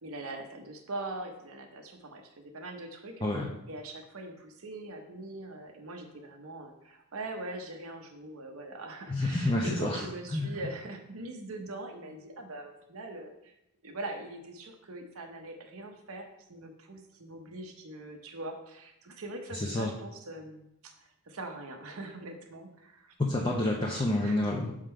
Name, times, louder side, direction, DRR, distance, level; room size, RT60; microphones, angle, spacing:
voice 1, 0.0-3.3 3.7-13.5 13.8-23.1 24.2-24.5, right 2 dB, 75° right, 4 dB, 0.8 m, -42 dB
voice 2, 3.2-3.5 9.1-10.5 19.5-19.9 23.2-24.8, left 1 dB, 20° left, -1 dB, 0.5 m, -29 dB
6.3 x 3.7 x 4.4 m, 0.83 s
head